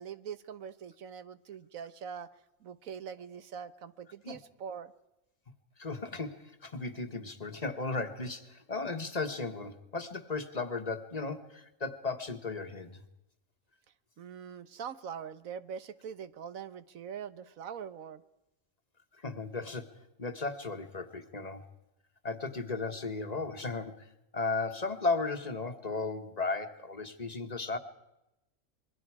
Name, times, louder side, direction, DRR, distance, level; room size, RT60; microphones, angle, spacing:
voice 1, 0.0-2.3 2.6-4.9 14.2-18.2, right 7 dB, 80° right, 13 dB, 1.4 m, -43 dB
voice 2, 5.8-13.0 19.2-21.6 22.2-27.8, left 3 dB, 30° left, 7 dB, 1.5 m, -35 dB
27.0 x 22.5 x 4.9 m, 0.91 s
omnidirectional pair, 1.4 m